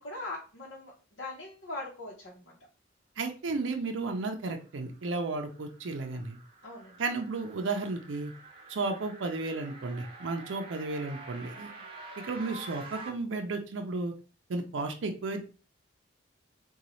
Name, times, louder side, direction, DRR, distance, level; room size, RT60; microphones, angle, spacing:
voice 1, 0.0-2.6 6.6-7.0 11.7-11.8, left 2 dB, 85° left, -4 dB, 0.8 m, -41 dB
voice 2, 3.2-6.4 7.0-8.3 8.7-11.7 12.2-14.1 14.5-15.4, right 3 dB, 80° right, 5 dB, 0.5 m, -33 dB
sound 1, 4.7-13.1, right 2 dB, 30° right, 0.7 m, -48 dB
3.8 x 2.3 x 3.0 m, 0.35 s
head